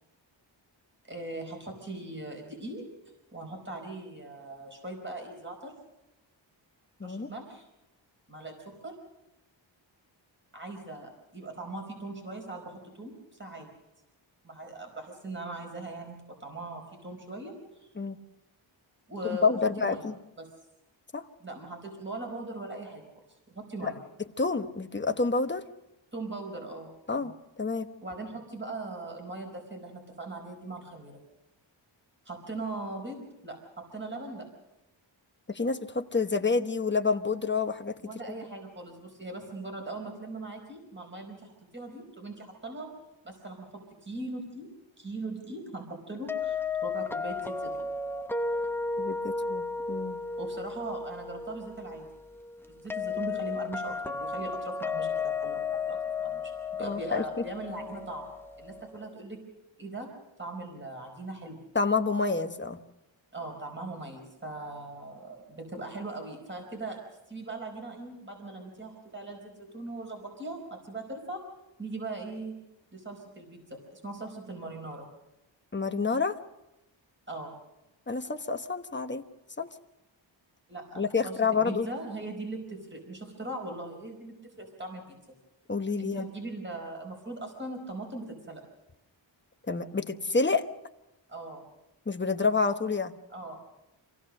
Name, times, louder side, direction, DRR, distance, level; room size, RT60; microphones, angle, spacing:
voice 1, 1.0-2.8 3.3-5.7 7.0-7.7 8.3-8.9 10.5-13.1 13.4-13.7 14.4-17.9 19.1-20.1 20.4-20.5 21.4-23.0 23.5-24.0 26.1-27.3 28.0-31.2 32.2-34.5 38.0-42.9 43.2-44.7 45.0-47.9 50.4-52.1 52.7-58.3 58.6-59.4 59.8-60.1 60.4-61.6 63.3-67.0 67.3-71.4 71.8-72.6 72.9-75.1 77.3-77.6 80.7-85.2 86.0-88.6 91.3-91.6 93.3-93.6, right 2 dB, 25° right, 2 dB, 4.8 m, -40 dB
voice 2, 19.4-20.1 21.1-21.2 24.4-25.6 27.1-27.3 27.6-27.9 35.5-37.9 49.0-50.2 56.8-57.2 61.7-62.8 75.7-76.4 78.1-79.2 79.6-79.7 81.0-81.9 85.7-86.2 89.7-90.7 92.1-93.1, left 4 dB, 25° left, 7 dB, 1.1 m, -28 dB
sound 1, 46.3-59.1, left 4 dB, 5° left, 0.8 m, -34 dB
27.0 x 17.0 x 6.5 m, 0.96 s
wide cardioid pair, 150°, 47 cm